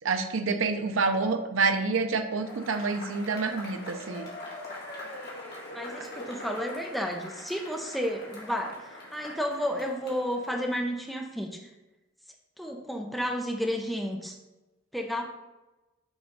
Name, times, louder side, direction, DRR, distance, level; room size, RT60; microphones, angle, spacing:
voice 1, 0.0-4.3, right 4 dB, 75° right, 7 dB, 0.6 m, -27 dB
Cheering / Applause / Crowd, 2.4-11.1, left 1 dB, 50° left, 1.6 m, -43 dB
voice 2, 5.7-8.8 9.1-11.6 12.6-14.4 14.9-15.2, equal, ahead, 1 dB, 0.7 m, -31 dB
6.3 x 3.4 x 5.2 m, 1.1 s
head